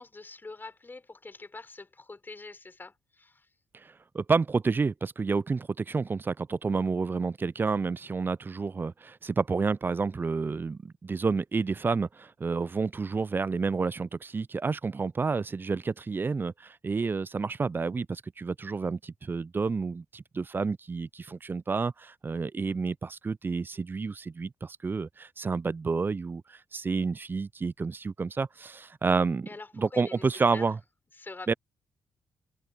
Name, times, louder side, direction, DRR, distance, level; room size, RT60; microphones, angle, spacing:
voice 1, 0.0-3.5 29.5-30.7 31.2-31.6, left 3 dB, 30° left, 6.2 m, -45 dB
voice 2, 4.1-26.4 26.7-29.5 29.8-30.8 31.5-31.6, right 4 dB, 30° right, 0.5 m, -29 dB
open air
hypercardioid pair, 45°, 7 cm